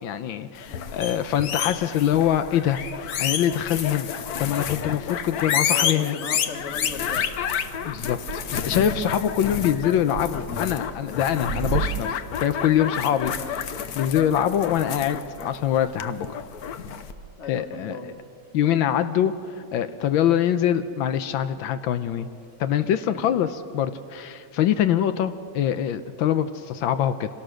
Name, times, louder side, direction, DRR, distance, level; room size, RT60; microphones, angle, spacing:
voice 1, 0.0-2.8 3.2-4.1 4.4-6.2 7.8-13.3 13.9-16.4 17.5-18.1 18.5-19.3 19.7-22.3 22.6-27.3, left 10 dB, 85° left, 11 dB, 1.5 m, -24 dB
sound 1, 0.6-17.1, left 8 dB, 60° left, 1.2 m, -30 dB
voice 2, 5.7-7.3 13.1-13.6 17.4-18.2 23.1-23.3 24.7-24.8, left 3 dB, 40° left, 5 dB, 1.7 m, -37 dB
sound 2, 6.6-12.4 12.7-19.8 20.0-20.8 21.5-23.3 23.7-24.1 24.8-24.9, right 6 dB, 80° right, 1.5 m, -38 dB
26.5 x 18.0 x 6.4 m, 2.4 s
omnidirectional pair, 2.1 m